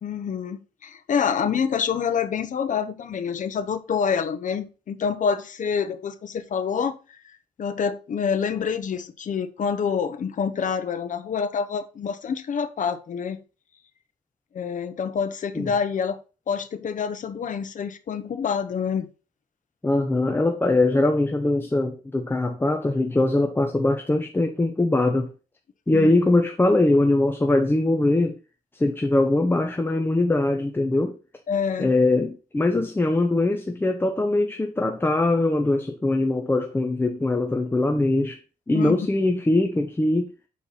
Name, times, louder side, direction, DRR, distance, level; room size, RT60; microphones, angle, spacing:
voice 1, 0.0-7.2 7.6-13.4 14.5-16.2 16.5-19.1 25.9-26.1 31.5-31.9 38.7-39.1, left 6 dB, 55° left, 0.9 m, -27 dB
voice 2, 19.8-25.3 25.9-28.4 28.7-31.2 31.8-38.4 38.7-40.3, left 2 dB, 15° left, 0.8 m, -22 dB
7.1 x 4.5 x 4.1 m
cardioid pair, 120°, 15 cm